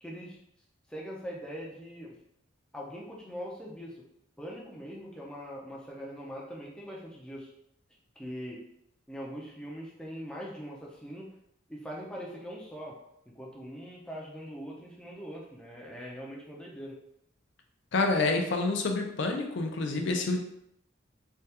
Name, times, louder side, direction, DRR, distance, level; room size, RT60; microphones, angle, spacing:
voice 1, 0.0-0.4 0.9-2.1 2.7-4.0 4.4-7.5 8.2-8.6 9.1-11.3 11.7-13.0 13.3-17.0, equal, 5° left, -4 dB, 0.5 m, -42 dB
voice 2, 17.9-20.4, left 3 dB, 60° left, 3 dB, 0.5 m, -28 dB
3.3 x 2.3 x 2.8 m, 0.76 s
head